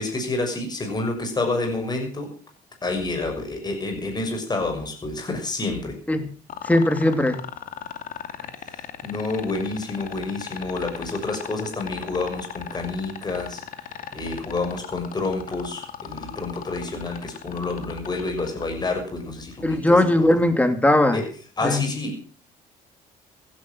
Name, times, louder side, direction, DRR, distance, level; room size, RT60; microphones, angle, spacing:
voice 1, 0.0-2.3 2.8-6.0 8.7-13.6 14.1-20.3 21.1-21.3 21.6-22.3, left 3 dB, 25° left, 4 dB, 6.5 m, -29 dB
sound 1, 6.5-18.6 20.3-20.4, left 9 dB, 55° left, 2.4 m, -36 dB
voice 2, 6.6-7.4 19.6-21.2 21.6-21.8, left 1 dB, 10° left, 8 dB, 2.8 m, -19 dB
16.0 x 12.0 x 6.3 m, 0.39 s
cardioid pair, 110°, 17 cm